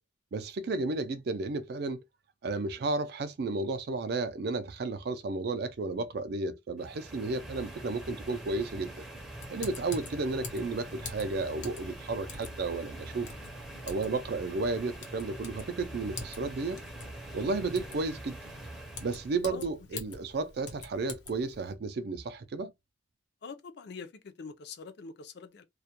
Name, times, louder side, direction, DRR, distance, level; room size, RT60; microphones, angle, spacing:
voice 1, 0.3-2.0 2.4-9.1 9.5-13.3 13.8-16.8 17.3-18.4 19.0-22.7, right 3 dB, 55° right, 0.4 m, -33 dB
sound 1, 6.8-19.4, right 1 dB, ahead, 0.5 m, -44 dB
Typing, 9.4-21.7, left 4 dB, 85° left, 0.8 m, -47 dB
voice 2, 19.5-20.0 23.4-25.6, left 4 dB, 60° left, 0.4 m, -44 dB
2.3 x 2.1 x 2.7 m
head